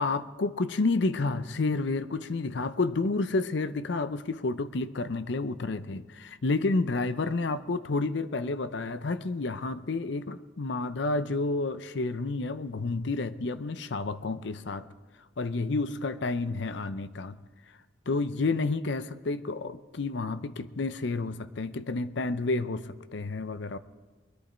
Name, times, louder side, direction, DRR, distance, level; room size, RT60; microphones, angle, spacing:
voice 1, 0.0-14.9 15.4-17.4 18.1-23.8, left 3 dB, 60° left, 13 dB, 0.6 m, -30 dB
21.5 x 11.0 x 4.4 m, 1.3 s
head